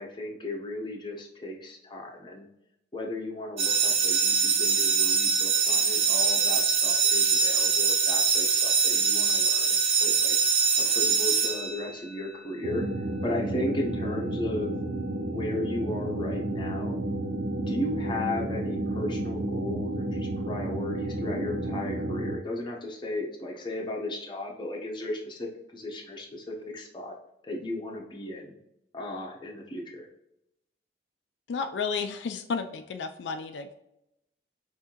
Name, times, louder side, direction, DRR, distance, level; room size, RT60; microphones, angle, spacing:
voice 1, 0.0-2.5 2.9-10.3 10.8-14.7 15.3-17.0 17.5-27.1 27.4-28.6 28.9-30.1, left 1 dB, 25° left, 0 dB, 0.8 m, -35 dB
sound 1, 3.6-12.2, right 6 dB, 35° right, 0.6 m, -23 dB
sound 2, 12.6-22.4, right 1 dB, 75° right, 0.5 m, -31 dB
voice 2, 31.5-33.9, left 5 dB, 85° left, 7 dB, 0.4 m, -32 dB
5.5 x 2.7 x 2.9 m, 0.83 s
head